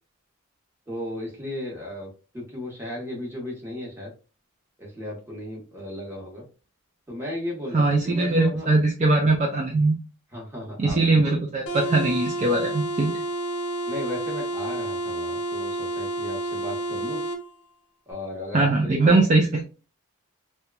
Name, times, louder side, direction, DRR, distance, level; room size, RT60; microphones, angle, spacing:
voice 1, 0.9-2.1 2.3-4.1 4.8-6.4 7.1-8.7 10.3-11.0 13.9-17.2 18.1-19.2, left 1 dB, 10° right, -2 dB, 0.9 m, -35 dB
voice 2, 7.7-9.9 10.8-13.1 18.5-19.6, right 2 dB, 35° right, 1 dB, 0.3 m, -21 dB
sound 1, 11.7-17.4, right 1 dB, 85° left, 0.7 m, -30 dB
2.8 x 2.2 x 2.3 m, 0.34 s
head